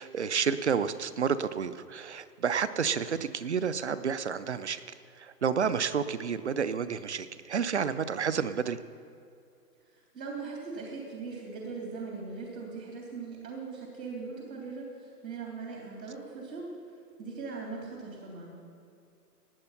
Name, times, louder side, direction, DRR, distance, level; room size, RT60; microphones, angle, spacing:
voice 1, 0.0-4.8 5.2-8.8, right 6 dB, 45° right, 14 dB, 0.5 m, -30 dB
voice 2, 10.1-16.7 17.2-18.5, right 4 dB, 80° right, -2 dB, 3.6 m, -40 dB
18.0 x 8.6 x 5.8 m, 2.5 s
hypercardioid pair, 175°, 49 cm